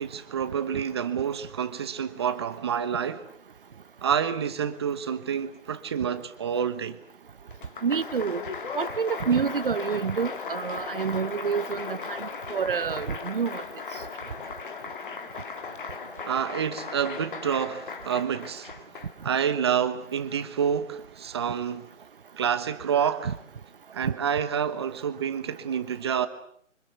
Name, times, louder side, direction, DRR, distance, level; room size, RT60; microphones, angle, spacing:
voice 1, 0.0-3.3 4.0-7.0 16.2-18.7 19.2-21.9 22.4-23.3 23.9-26.3, right 8 dB, 20° right, 1.1 m, -28 dB
Applause, 7.5-19.4, left 5 dB, 40° left, 2.3 m, -37 dB
voice 2, 7.8-8.4 8.7-13.6 23.2-23.3 24.0-24.1, right 6 dB, 40° right, 1.1 m, -28 dB
28.0 x 25.5 x 8.1 m
figure-of-eight pair, 160°, 40 cm